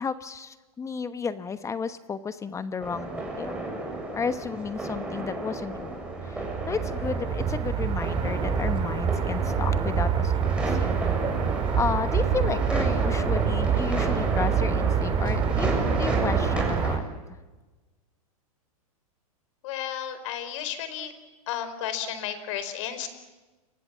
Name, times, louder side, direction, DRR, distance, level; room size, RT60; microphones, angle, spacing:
voice 1, 0.0-3.6 4.1-11.1 11.7-17.0 17.3-17.4, left 5 dB, 15° left, 12 dB, 1.1 m, -33 dB
sound 1, 2.8-17.0, right 1 dB, 5° right, 7.1 m, -32 dB
sound 2, 6.0-17.0, right 7 dB, 25° right, 3.2 m, -26 dB
voice 2, 19.6-21.1 21.5-23.1, left 9 dB, 55° left, 11 dB, 4.6 m, -33 dB
29.5 x 24.5 x 7.4 m, 1.2 s
hypercardioid pair, 120°, 19 cm